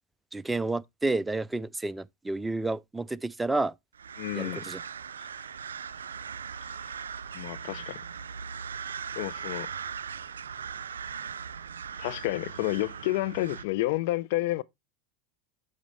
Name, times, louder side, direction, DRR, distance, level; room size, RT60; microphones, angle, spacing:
voice 1, 0.3-3.7 4.3-4.8, right 2 dB, 10° right, 0.4 m, -30 dB
sound 1, 3.9-13.6, right 7 dB, 90° right, 0.3 m, -39 dB
voice 2, 4.2-4.6 7.3-8.0 9.1-9.7 12.0-14.6, left 17 dB, 65° left, 0.4 m, -30 dB
8.1 x 5.2 x 3.2 m
hypercardioid pair, 95°, 0 cm